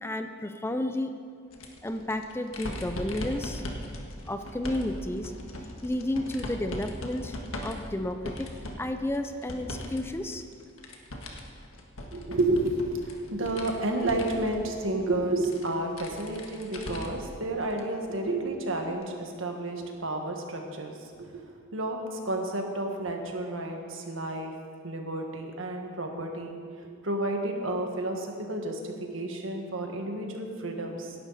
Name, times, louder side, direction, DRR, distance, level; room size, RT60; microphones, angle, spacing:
voice 1, 0.0-1.1 1.8-3.6 4.3-5.3 5.8-7.4 7.6-8.5 8.8-10.4, left 1 dB, 10° left, 7 dB, 0.5 m, -32 dB
sound 1, 1.5-10.0 10.3-17.3 17.7-17.8 19.0-19.1, left 1 dB, 90° left, 1.6 m, -39 dB
voice 2, 12.1-24.5 24.8-26.6 27.0-31.1, right 2 dB, 70° right, 3 dB, 1.6 m, -31 dB
17.0 x 11.0 x 4.1 m, 2.2 s
head